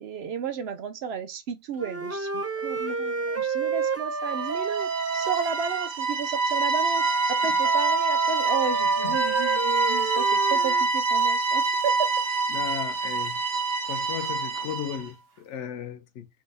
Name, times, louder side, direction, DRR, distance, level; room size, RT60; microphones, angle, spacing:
voice 1, 0.0-12.1, right 6 dB, 65° right, 0.7 m, -33 dB
Wind instrument woodwind instrument, 1.8-5.9 6.9-10.9, right 4 dB, 20° right, 0.3 m, -30 dB
sound 1, 4.3-15.1, right 4 dB, 80° right, 1.4 m, -26 dB
voice 2, 12.5-13.4 13.8-16.3, left 9 dB, 70° left, 0.8 m, -35 dB
3.6 x 3.0 x 3.8 m
omnidirectional pair, 1.3 m